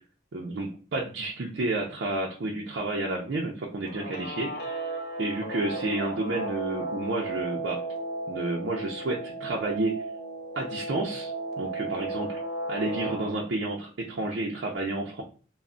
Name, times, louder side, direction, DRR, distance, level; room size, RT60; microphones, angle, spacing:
voice 1, 0.3-4.8 5.2-7.8 8.3-9.9 10.5-11.3 11.6-12.4 12.7-15.2, right 2 dB, 60° right, -2 dB, 0.4 m, -30 dB
Guitar, 3.8-13.3, right 2 dB, 50° left, 0.5 m, -35 dB
2.2 x 2.0 x 3.6 m, 0.38 s
head